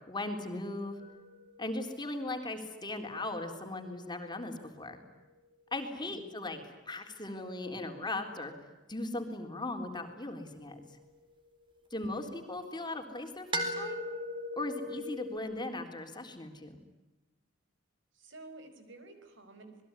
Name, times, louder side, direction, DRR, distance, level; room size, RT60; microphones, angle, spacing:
voice 1, 0.1-1.0 1.6-5.0 5.7-6.6 6.9-8.5 8.9-10.8 11.9-14.0 14.6-16.8, left 2 dB, 20° left, 4 dB, 3.7 m, -38 dB
sound 1, 1.0-5.3 9.6-12.1 13.5-15.4, equal, 25° right, 4.3 m, -41 dB
voice 2, 6.1-6.5 18.1-19.8, right 2 dB, 65° right, 8 dB, 5.3 m, -51 dB
28.0 x 21.0 x 9.8 m, 1.1 s
head